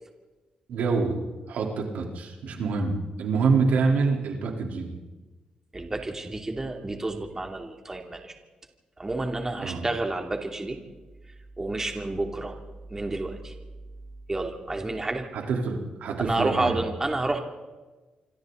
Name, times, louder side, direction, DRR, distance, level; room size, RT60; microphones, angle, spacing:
voice 1, 0.7-1.2 1.5-5.0 9.6-9.8 15.3-16.8, right 4 dB, 85° right, 1 dB, 3.9 m, -26 dB
voice 2, 5.7-8.3 9.0-10.8 11.6-12.6 12.9-13.5 14.3-15.3 16.2-17.4, right 2 dB, 20° right, 3 dB, 2.9 m, -30 dB
27.5 x 25.5 x 4.1 m, 1.2 s
cardioid pair, 105°, 3 cm